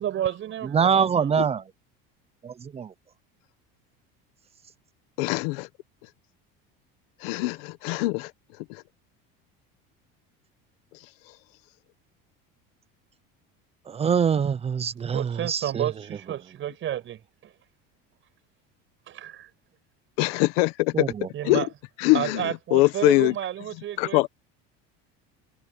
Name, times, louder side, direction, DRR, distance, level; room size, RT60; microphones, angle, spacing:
voice 1, 0.0-1.4 15.1-17.5 19.1-19.5 21.3-21.7 22.1-24.3, right 11 dB, 45° right, 6.0 m, -31 dB
voice 2, 0.7-1.6 2.4-2.9 13.9-15.9 20.9-21.3, right 7 dB, 20° right, 0.5 m, -24 dB
voice 3, 5.2-5.7 7.2-8.3 8.7-8.8 20.2-21.0 21.4-21.6 22.0-22.4 22.7-23.3 24.0-24.3, left 21 dB, 85° left, 1.4 m, -22 dB
cardioid pair, 130°, 29 cm